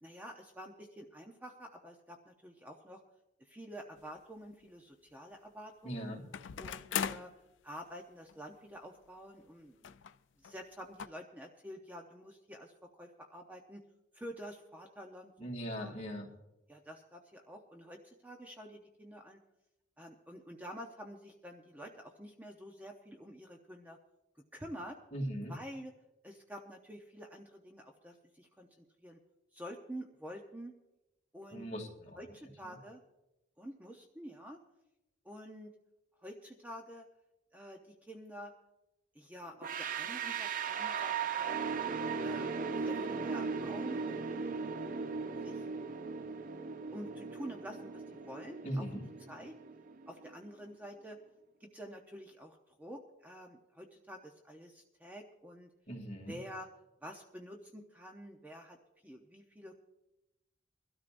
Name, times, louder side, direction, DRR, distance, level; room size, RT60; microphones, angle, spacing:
voice 1, 0.0-3.0 3.4-6.1 6.6-7.3 7.6-9.9 10.4-13.8 14.1-15.5 15.8-16.1 16.7-19.4 20.0-24.0 24.5-25.0 25.5-25.9 26.2-29.2 29.5-30.7 31.3-31.7 32.1-33.0 33.6-34.6 35.2-35.7 36.2-37.0 37.5-38.5 39.1-41.8 42.2-45.1 45.4-45.6 46.9-48.9 49.3-49.5 50.1-51.2 51.6-55.7 56.3-56.7 57.0-58.8 59.0-59.8, equal, 10° right, 2 dB, 0.7 m, -48 dB
sound 1, 4.0-4.1 6.3-7.4 8.3-8.4 8.6-8.7 9.8-10.2 10.4-10.6 11.0-11.1, left 8 dB, 70° left, 0.5 m, -38 dB
voice 2, 5.8-6.3 15.4-16.3 25.1-25.5 31.5-32.2 32.6-32.8 48.6-49.1 55.9-56.4, equal, 35° left, -1 dB, 2.7 m, -39 dB
sound 2, 39.6-50.5, right 5 dB, 45° right, 0.5 m, -38 dB
23.0 x 13.0 x 2.6 m, 0.95 s
head